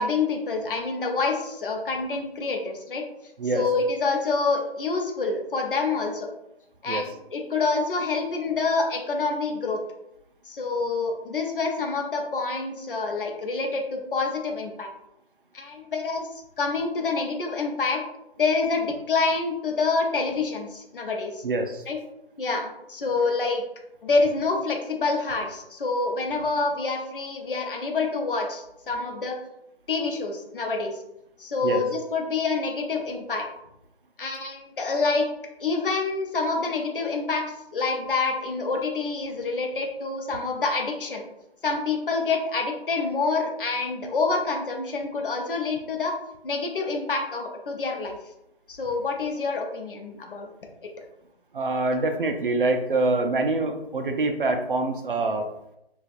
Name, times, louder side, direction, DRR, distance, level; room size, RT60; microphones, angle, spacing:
voice 1, 0.0-3.0 3.5-6.3 6.8-9.8 10.5-14.9 15.5-16.3 16.6-18.0 18.4-21.4 21.9-22.0 22.4-23.6 24.0-29.4 29.9-31.0 31.4-33.5 34.2-35.3 35.6-37.4 37.7-41.2 41.6-46.1 46.4-48.2 48.7-50.5, left 3 dB, 60° left, 2 dB, 0.6 m, -27 dB
voice 2, 21.4-21.8 31.6-31.8 51.5-55.5, right 2 dB, 55° right, 5 dB, 0.4 m, -25 dB
3.9 x 2.4 x 2.4 m, 0.84 s
figure-of-eight pair, 165°, 32 cm